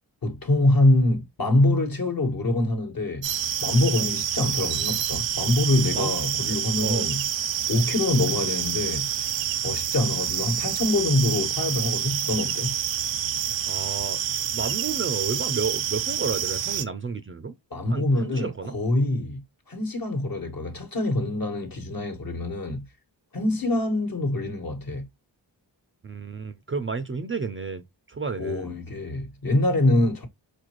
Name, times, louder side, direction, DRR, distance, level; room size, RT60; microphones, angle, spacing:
voice 1, 0.2-3.3 3.6-7.3 7.7-9.1 9.6-12.8 17.7-22.8 23.3-25.1 28.4-30.3, left 2 dB, 50° left, 1.3 m, -24 dB
sound 1, 3.2-16.8, right 10 dB, 85° right, 0.6 m, -28 dB
voice 2, 13.7-17.6 17.9-18.8 26.0-28.7, right 5 dB, 30° right, 0.4 m, -32 dB
4.4 x 2.5 x 3.0 m
cardioid pair, 65°, 45 cm